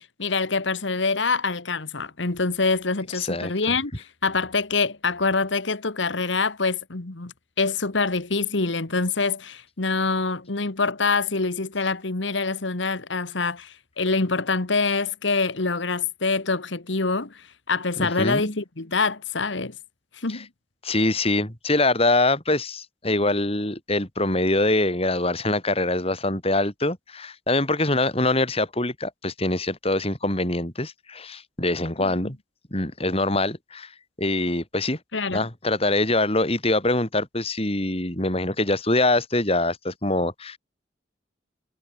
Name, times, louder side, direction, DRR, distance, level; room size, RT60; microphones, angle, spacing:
voice 1, 0.0-19.7 20.2-20.5 32.0-32.1 35.1-35.5, left 4 dB, 75° left, 1.6 m, -25 dB
voice 2, 3.2-3.8 18.0-18.5 20.3-20.4 20.8-32.4 32.7-33.9 34.2-35.0 35.3-40.6, left 2 dB, 30° left, 4.8 m, -24 dB
head